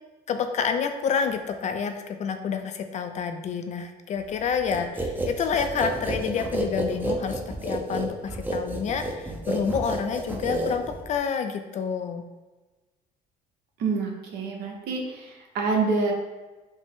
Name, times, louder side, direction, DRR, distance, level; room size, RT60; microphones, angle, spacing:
voice 1, 0.3-12.2, left 6 dB, 45° left, 7 dB, 0.4 m, -28 dB
sound 1, 4.7-11.2, right 1 dB, 10° right, 0.5 m, -30 dB
voice 2, 13.8-16.1, right 4 dB, 75° right, 0 dB, 0.8 m, -27 dB
5.2 x 2.0 x 3.5 m, 1.2 s
cardioid pair, 110°, 17 cm